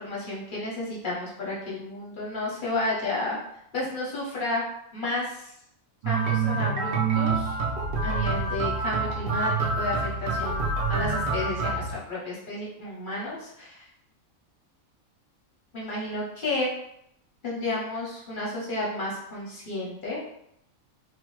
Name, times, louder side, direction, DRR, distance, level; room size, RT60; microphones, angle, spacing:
voice 1, 0.0-3.4 3.7-4.6 4.9-5.5 6.0-7.5 8.0-13.9 15.7-16.7 17.4-20.2, left 2 dB, 50° left, -5 dB, 0.7 m, -32 dB
sound 1, 6.0-11.9, right 4 dB, 65° right, 0.6 m, -27 dB
2.9 x 2.0 x 3.0 m, 0.75 s
omnidirectional pair, 1.4 m